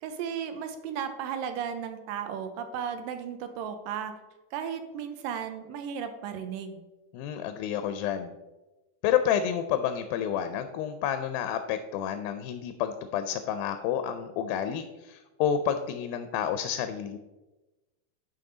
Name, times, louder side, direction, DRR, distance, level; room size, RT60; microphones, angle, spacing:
voice 1, 0.0-4.1 4.5-6.8, right 8 dB, 80° right, 8 dB, 2.3 m, -35 dB
voice 2, 7.1-8.3 9.0-17.2, left 9 dB, 85° left, 9 dB, 2.4 m, -29 dB
11.0 x 5.4 x 3.8 m, 1.1 s
omnidirectional pair, 4.2 m